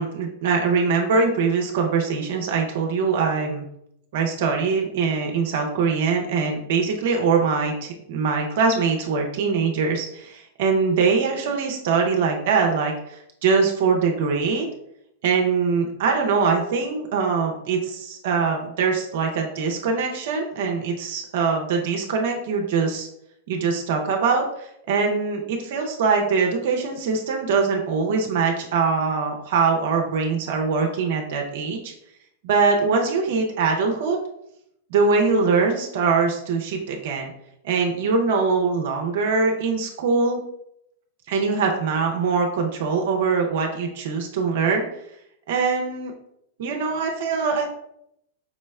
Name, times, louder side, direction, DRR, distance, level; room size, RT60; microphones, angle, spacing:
voice 1, 0.0-3.6 4.1-14.7 15.2-23.1 23.5-31.9 32.4-34.2 34.9-37.3 37.6-40.4 41.3-44.9 45.5-46.1 46.6-47.7, right 5 dB, 60° right, 2 dB, 0.6 m, -22 dB
4.9 x 2.1 x 3.4 m, 0.76 s
figure-of-eight pair, 95°, 0 cm